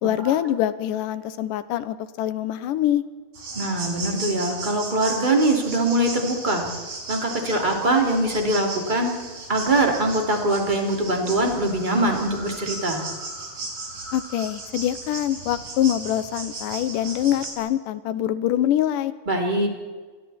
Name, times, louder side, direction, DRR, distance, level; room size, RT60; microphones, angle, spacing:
voice 1, 0.0-3.0 14.1-19.1, left 12 dB, 80° left, 14 dB, 2.5 m, -24 dB
sound 1, 3.3-17.5, right 3 dB, 60° right, 6.0 m, -36 dB
voice 2, 3.5-6.7 7.1-9.1 9.5-13.0 19.3-19.7, right 1 dB, 15° right, 2 dB, 3.1 m, -22 dB
27.5 x 21.5 x 4.4 m, 1.4 s
omnidirectional pair, 3.8 m